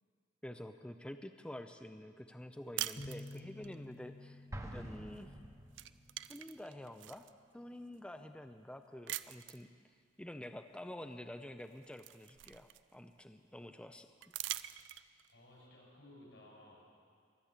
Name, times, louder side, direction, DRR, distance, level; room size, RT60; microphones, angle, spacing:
voice 1, 0.4-5.3 6.3-7.3 7.5-9.7 10.2-14.1, left 1 dB, 5° left, 8 dB, 0.4 m, -48 dB
sound 1, 2.8-3.8 5.2-5.4 5.7-7.3 7.9-8.0 9.1-9.7 11.1-11.2 11.6-13.1 14.2-15.3, right 14 dB, 80° right, 0.4 m, -44 dB
sound 2, 3.0-6.7, left 2 dB, 40° left, 1.4 m, -52 dB
Explosion, 4.5-6.2, right 1 dB, 15° right, 0.9 m, -47 dB
voice 2, 15.3-17.0, left 1 dB, 85° left, -2 dB, 5.8 m, -58 dB
23.5 x 8.1 x 7.3 m, 2.1 s
head